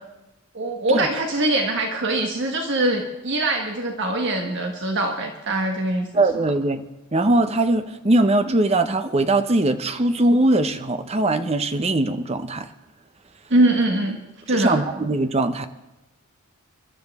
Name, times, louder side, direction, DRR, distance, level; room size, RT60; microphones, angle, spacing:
voice 1, 0.5-6.2 13.5-14.2 14.5-14.8, right 2 dB, 55° right, 2 dB, 1.4 m, -22 dB
voice 2, 6.1-6.8 7.1-12.7 14.5-15.7, right 2 dB, 30° right, 10 dB, 0.7 m, -21 dB
29.5 x 12.5 x 3.6 m, 1.0 s
head